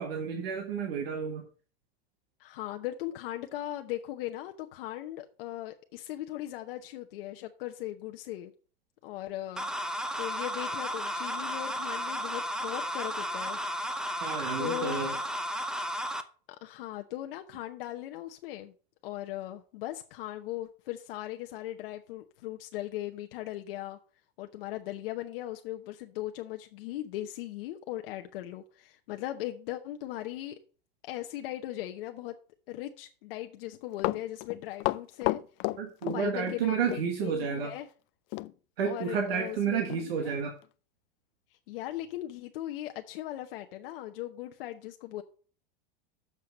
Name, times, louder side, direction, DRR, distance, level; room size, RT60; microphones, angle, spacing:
voice 1, 0.0-1.5 14.2-15.2 35.8-37.7 38.8-40.6, right 7 dB, 85° right, 1.5 m, -31 dB
voice 2, 2.4-8.5 9.0-9.7 10.2-13.6 13.9-14.2 14.6-15.2 16.6-18.7 19.0-24.0 24.4-30.6 31.0-32.4 32.7-35.4 36.1-37.9 38.8-40.4 41.7-45.2, left 14 dB, 70° left, 0.9 m, -38 dB
sound 1, 9.6-16.2, equal, ahead, 0.6 m, -33 dB
Run, 33.7-36.6 36.9-37.1 38.3-38.5 38.9-39.0 39.5-39.6 39.9-40.1 40.6-40.7, left 19 dB, 45° left, 0.4 m, -32 dB
7.6 x 5.6 x 6.4 m
supercardioid pair, 125°, 29 cm